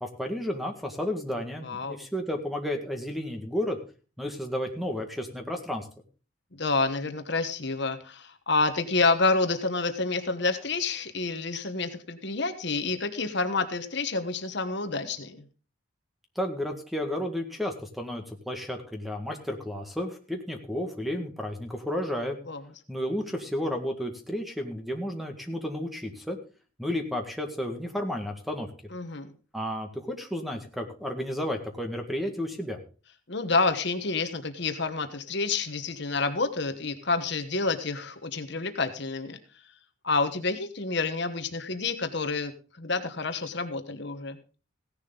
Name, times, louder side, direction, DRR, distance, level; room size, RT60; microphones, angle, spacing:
voice 1, 0.0-3.8 4.2-5.9 16.4-22.4 22.9-26.4 26.8-28.7 29.5-32.8, left 1 dB, ahead, 4 dB, 1.8 m, -32 dB
voice 2, 1.6-2.0 6.6-15.4 22.5-22.6 28.9-29.3 33.3-39.4 40.0-42.5 42.8-44.4, left 3 dB, 55° left, 8 dB, 1.2 m, -28 dB
16.5 x 10.5 x 3.9 m, 0.36 s
head